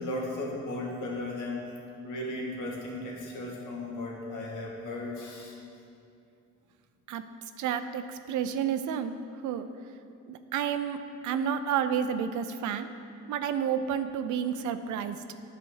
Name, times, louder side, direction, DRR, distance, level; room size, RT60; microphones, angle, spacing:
voice 1, 0.0-1.6 2.0-5.5, left 1 dB, 85° left, -2 dB, 1.8 m, -35 dB
voice 2, 7.6-8.0 8.3-9.1 9.4-9.7 10.3-11.0 11.2-12.9 13.3-15.2, right 8 dB, 75° right, 10 dB, 0.6 m, -30 dB
10.0 x 4.3 x 6.4 m, 2.5 s
cardioid pair, 90°, 30 cm